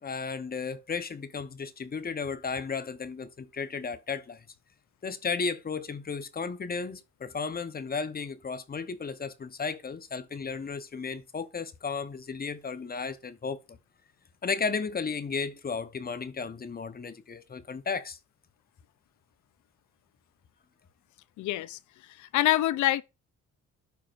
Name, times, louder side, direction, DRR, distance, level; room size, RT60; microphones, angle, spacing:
voice 1, 0.0-4.4 5.0-13.8 14.4-18.2, left 5 dB, 30° left, 0.9 m, -34 dB
voice 2, 21.4-21.8 22.1-23.0, left 15 dB, 75° left, 0.6 m, -26 dB
11.5 x 4.8 x 2.5 m
cardioid pair, 90°, 30 cm